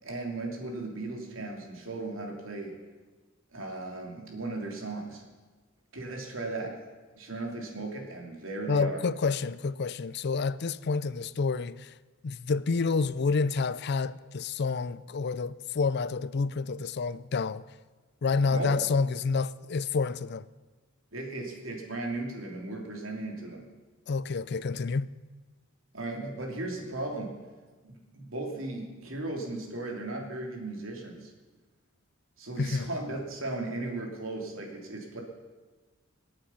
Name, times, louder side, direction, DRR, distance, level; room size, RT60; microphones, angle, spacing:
voice 1, 0.0-2.8 3.5-5.2 5.9-6.8 7.1-9.0 18.5-18.8 21.1-23.7 25.9-27.4 27.8-31.3 32.4-35.2, right 2 dB, 90° right, 3.0 m, -36 dB
voice 2, 8.7-11.9 12.2-17.6 18.2-20.5 24.1-25.1 32.6-32.9, left 4 dB, 55° left, 0.5 m, -29 dB
26.5 x 8.8 x 5.7 m
head